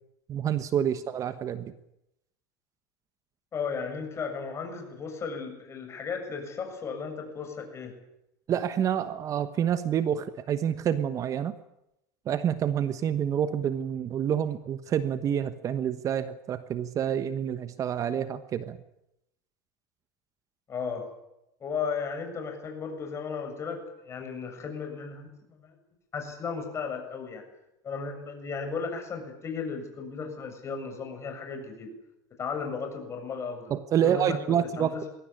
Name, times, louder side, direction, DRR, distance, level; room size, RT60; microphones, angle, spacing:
voice 1, 0.3-1.7 8.5-11.5 12.3-18.8 33.7-34.9, right 9 dB, 35° right, 12 dB, 1.2 m, -28 dB
voice 2, 3.5-7.9 20.7-21.0 21.6-25.3 25.6-25.7 26.1-27.4 27.8-31.9 32.4-33.7 34.0-34.4 34.8-35.0, left 5 dB, 30° left, 5 dB, 7.3 m, -35 dB
22.5 x 17.0 x 9.9 m, 0.86 s
supercardioid pair, 120°, 10 cm